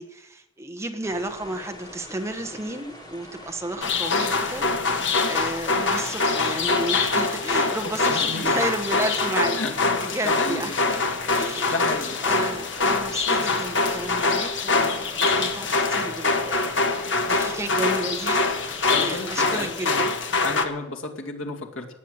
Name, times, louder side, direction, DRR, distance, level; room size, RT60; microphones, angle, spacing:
voice 1, 0.0-4.8 5.3-9.6 10.0-10.7 11.4-16.7 17.3-18.6 18.9-20.1, right 1 dB, 15° right, 6 dB, 1.1 m, -32 dB
sound 1, 1.0-19.7, left 1 dB, 20° left, 2.9 m, -44 dB
sound 2, 3.8-20.6, left 3 dB, 65° left, 1.4 m, -24 dB
voice 2, 5.0-5.3 8.0-8.6 9.5-9.7 10.2-11.1 11.4-12.5 18.9-20.0 20.4-21.9, left 2 dB, 90° left, 1 dB, 2.4 m, -33 dB
18.5 x 8.4 x 8.0 m, 1.0 s
head